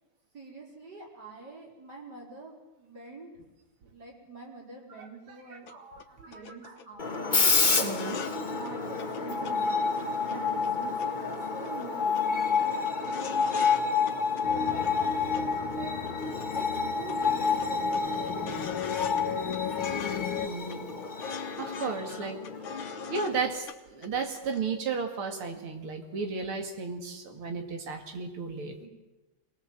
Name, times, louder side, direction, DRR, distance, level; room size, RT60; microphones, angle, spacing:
voice 1, 0.3-3.4 3.8-5.7 6.3-7.5 8.0-12.1 12.6-13.7 14.2-15.3 15.8-15.9 16.5-18.8 19.2-20.1 28.8-28.9, right 2 dB, 50° right, -2 dB, 5.3 m, -45 dB
voice 2, 5.5-6.7 7.8-8.2 20.4-20.9 21.3-22.4 23.1-28.8, right 5 dB, 85° right, 4 dB, 3.0 m, -34 dB
sound 1, 5.7-5.8 6.0-6.1 6.3-6.9 7.1-7.4 7.6-8.4 8.6-8.7 9.0-9.5 9.8-11.4 11.6-11.9 12.1-12.2 12.5-13.8 14.1-14.9 15.3-16.5 16.7-16.8 17.1-19.2 19.5-20.4 20.7-23.4 23.7-23.8 24.0-24.6 24.9-25.0, left 6 dB, 70° left, 1.8 m, -41 dB
Screech, 7.0-23.6, left 5 dB, 25° left, 1.4 m, -29 dB
sound 2, 14.4-20.5, left 6 dB, 90° left, 2.1 m, -36 dB
23.0 x 19.0 x 7.7 m, 1.1 s
omnidirectional pair, 2.3 m